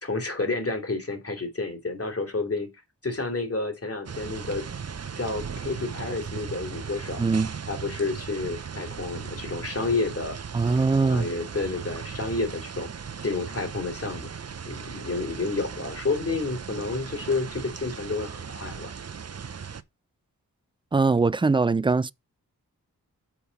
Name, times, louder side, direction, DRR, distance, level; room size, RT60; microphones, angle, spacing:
voice 1, 0.0-2.7 3.0-4.7 5.2-7.2 7.7-10.4 10.7-12.9 13.2-14.3 14.7-18.9, left 3 dB, 40° left, 2.9 m, -30 dB
sound 1, 4.1-19.8, right 6 dB, 40° right, 0.8 m, -37 dB
voice 2, 7.2-7.5 10.5-11.3 20.9-22.1, right 4 dB, 15° right, 0.3 m, -22 dB
7.0 x 4.5 x 5.7 m
cardioid pair, 40°, 37 cm